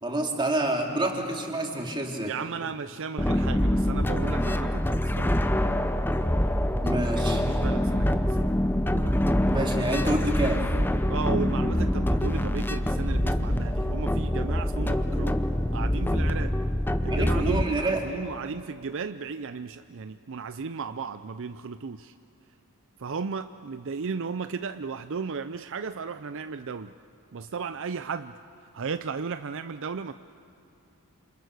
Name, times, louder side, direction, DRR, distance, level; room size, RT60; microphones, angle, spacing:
voice 1, 0.0-2.3 6.8-7.4 9.5-10.6 17.1-18.1, right 1 dB, 20° right, 1 dB, 2.7 m, -28 dB
voice 2, 2.3-5.5 7.5-8.2 8.9-9.2 11.1-15.4 15.7-16.5 17.0-22.1 23.0-26.9 27.3-28.4 28.7-30.1, right 5 dB, 60° right, 11 dB, 0.5 m, -35 dB
sound 1, 3.2-17.6, left 1 dB, 10° left, 0.7 m, -25 dB
28.0 x 27.5 x 6.5 m, 2.5 s
head